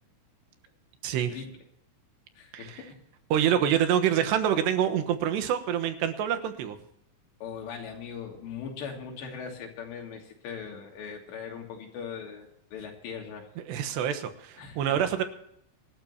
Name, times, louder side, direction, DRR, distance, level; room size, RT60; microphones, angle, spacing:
voice 1, 2.4-3.0 7.4-13.5 14.6-15.0, left 6 dB, 85° left, 1 dB, 4.8 m, -40 dB
voice 2, 3.3-6.8 13.6-15.2, right 9 dB, 90° right, 7 dB, 3.4 m, -26 dB
26.0 x 12.0 x 2.9 m, 0.74 s
omnidirectional pair, 4.9 m